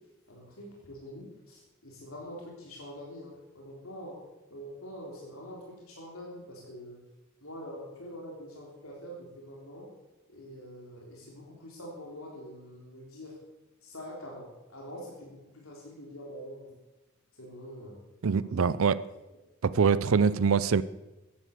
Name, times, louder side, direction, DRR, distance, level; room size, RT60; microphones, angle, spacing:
voice 1, 0.3-4.2 4.5-7.0 7.4-9.9 10.3-13.4 13.8-16.7 17.4-18.0 18.4-18.8 19.6-20.2, equal, 90° left, -2 dB, 3.7 m, -45 dB
voice 2, 18.2-19.0 19.6-20.8, right 5 dB, 75° right, 16 dB, 0.5 m, -24 dB
14.5 x 11.0 x 6.7 m, 1.1 s
head